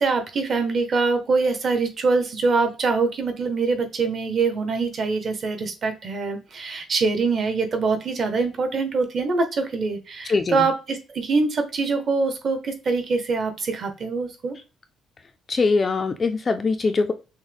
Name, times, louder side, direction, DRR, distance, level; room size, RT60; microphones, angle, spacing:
voice 1, 0.0-14.5, right 4 dB, 35° right, 7 dB, 0.8 m, -24 dB
voice 2, 10.3-10.7 15.5-17.1, left 4 dB, 25° left, 7 dB, 0.3 m, -22 dB
6.2 x 2.1 x 3.3 m, 0.31 s
cardioid pair, 175°, 0 cm